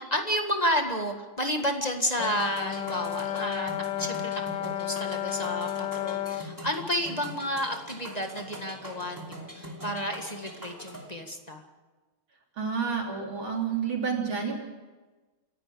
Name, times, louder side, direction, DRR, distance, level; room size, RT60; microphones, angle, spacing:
voice 1, 0.0-11.6, equal, 20° left, 4 dB, 1.7 m, -31 dB
Brass instrument, 2.2-6.6, left 12 dB, 65° left, 1.6 m, -32 dB
sound 1, 2.2-11.1, equal, 10° right, 2.7 m, -43 dB
voice 2, 12.6-14.6, right 6 dB, 75° right, 0 dB, 4.2 m, -29 dB
28.5 x 11.0 x 8.6 m, 1.2 s
omnidirectional pair, 2.2 m